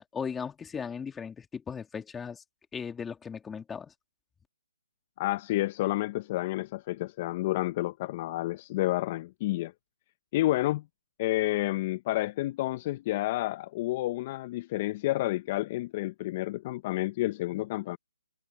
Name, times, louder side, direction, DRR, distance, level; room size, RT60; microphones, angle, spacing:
voice 1, 0.0-2.4 2.7-3.9, left 6 dB, 10° left, 2.8 m, -37 dB
voice 2, 5.2-9.7 10.3-10.8 11.2-18.0, left 17 dB, 30° left, 0.7 m, -30 dB
hypercardioid pair, 155°, 0 cm